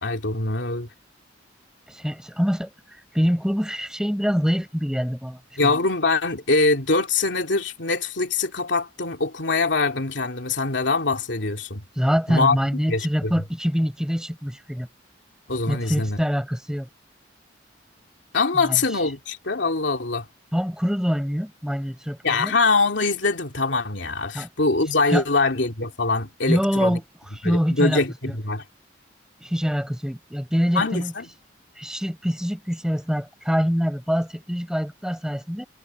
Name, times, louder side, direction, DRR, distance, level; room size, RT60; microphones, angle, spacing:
voice 1, 0.0-0.9 5.6-11.8 12.3-12.6 12.9-13.3 15.5-16.2 18.3-20.3 22.2-27.0 27.4-28.6 30.7-31.2, left 3 dB, 80° left, 2.6 m, -23 dB
voice 2, 1.9-5.7 12.0-14.9 15.7-16.9 18.5-18.8 20.5-22.5 24.3-24.5 25.1-25.2 26.5-27.0 27.3-28.4 29.4-31.1 31.8-35.7, equal, 5° right, 7.4 m, -25 dB
head